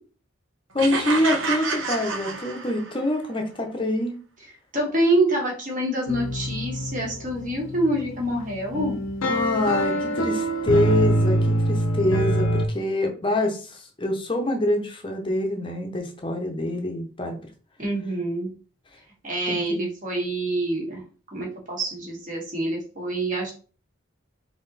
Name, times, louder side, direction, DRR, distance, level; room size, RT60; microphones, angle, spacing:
voice 1, 0.7-4.2 9.3-17.4 19.5-19.8, left 1 dB, 25° left, 3 dB, 0.7 m, -25 dB
sound 1, 0.8-3.1, right 4 dB, 75° right, 0.8 m, -29 dB
voice 2, 4.7-9.0 17.8-18.5 19.2-21.0 21.3-23.5, right 1 dB, 40° right, -2 dB, 1.6 m, -26 dB
sound 2, 6.1-12.7, equal, 85° left, 0.8 m, -24 dB
3.9 x 2.9 x 4.1 m, 0.38 s
head